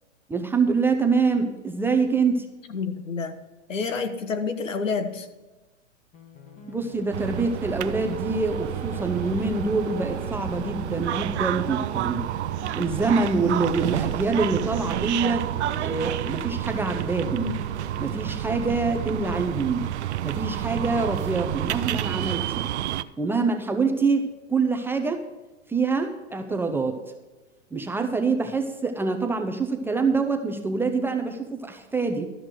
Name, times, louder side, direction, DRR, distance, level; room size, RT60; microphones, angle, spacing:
voice 1, 0.3-2.5 6.7-12.2 12.8-15.5 15.8-17.6 18.0-19.9 20.2-22.7 23.2-25.2 25.7-27.0 27.7-32.3, right 4 dB, 5° right, 5 dB, 0.6 m, -25 dB
voice 2, 2.7-3.4 3.7-5.3, left 5 dB, 90° left, 8 dB, 1.3 m, -28 dB
sound 1, 6.1-18.1, left 2 dB, 20° left, 1.3 m, -43 dB
sound 2, 7.1-23.0, right 12 dB, 65° right, 0.6 m, -29 dB
13.0 x 5.8 x 6.5 m, 1.1 s
hypercardioid pair, 120°, 37 cm